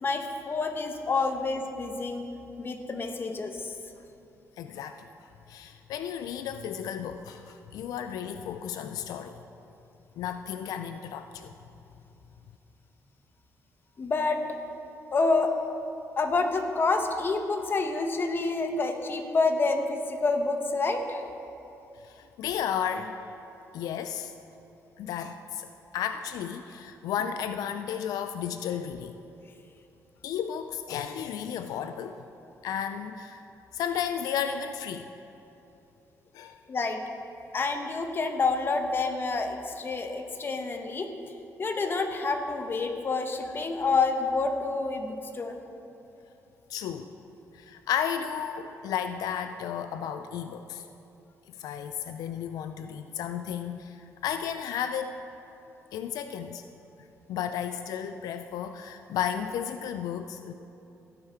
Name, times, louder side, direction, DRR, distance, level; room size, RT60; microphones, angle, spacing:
voice 1, 0.0-2.3 2.6-3.7 14.0-14.4 15.1-15.5 16.2-21.2 36.7-37.0 37.5-41.1 41.6-45.6, left 3 dB, 35° left, 5 dB, 1.0 m, -28 dB
voice 2, 4.6-5.1 5.5-9.4 10.2-11.5 21.9-23.2 23.7-24.3 25.0-25.7 25.9-29.1 30.2-32.2 32.6-33.4 33.7-35.1 36.3-36.6 46.7-47.1 47.5-50.8 51.6-55.1 55.9-56.6 57.3-60.5, left 8 dB, 90° left, 9 dB, 0.4 m, -33 dB
15.5 x 5.8 x 4.5 m, 2.9 s
cardioid pair, 100°, 6 cm